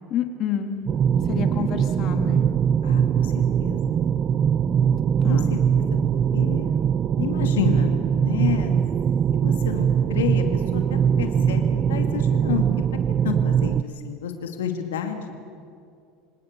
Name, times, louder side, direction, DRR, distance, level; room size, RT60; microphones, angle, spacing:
voice 1, 0.1-0.8 1.2-2.5 5.2-5.5, left 9 dB, 50° left, 6 dB, 2.0 m, -28 dB
sound 1, 0.9-13.8, right 8 dB, 40° right, 0.5 m, -21 dB
voice 2, 2.8-4.0 5.3-5.8 6.3-6.8 7.2-8.7 9.3-12.6 13.2-15.4, left 8 dB, 90° left, 5 dB, 2.3 m, -30 dB
27.0 x 18.0 x 6.7 m, 2.4 s
supercardioid pair, 100°, 0 cm